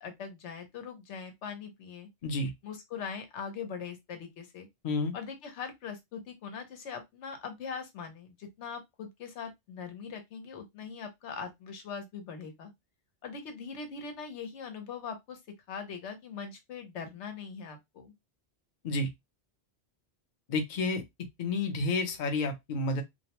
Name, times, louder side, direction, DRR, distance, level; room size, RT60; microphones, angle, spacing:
voice 1, 0.0-2.1 2.6-4.7 5.1-12.7 13.2-15.4 15.7-18.1, left 6 dB, 90° left, 1.0 m, -41 dB
voice 2, 20.5-21.0 21.4-23.0, left 3 dB, 50° left, 0.7 m, -30 dB
2.4 x 2.1 x 2.9 m
omnidirectional pair, 1.2 m